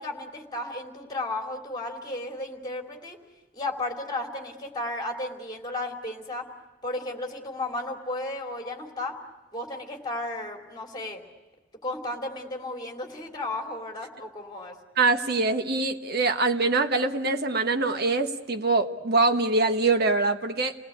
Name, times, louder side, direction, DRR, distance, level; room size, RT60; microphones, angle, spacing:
voice 1, 0.0-3.2 3.5-6.5 6.8-9.2 9.5-11.2 11.8-14.8, left 2 dB, 25° left, 2 dB, 3.0 m, -34 dB
voice 2, 15.0-20.7, right 3 dB, 55° right, 7 dB, 1.4 m, -24 dB
29.0 x 18.5 x 8.5 m, 1.2 s
head